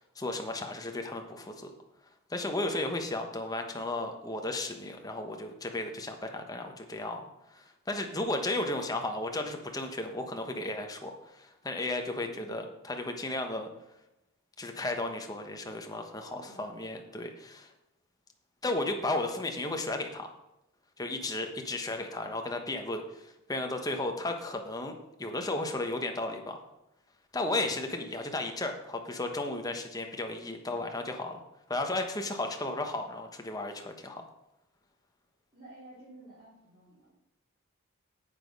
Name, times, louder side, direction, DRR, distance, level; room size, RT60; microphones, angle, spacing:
voice 1, 0.0-1.7 2.3-7.2 7.5-13.7 14.6-17.7 18.6-20.3 21.0-26.6 27.3-31.4 31.7-34.2, left 2 dB, 15° left, 4 dB, 1.1 m, -34 dB
voice 2, 12.3-12.7 16.1-17.2 35.5-37.1, right 1 dB, 25° right, -11 dB, 4.3 m, -53 dB
8.9 x 8.2 x 5.4 m, 0.90 s
head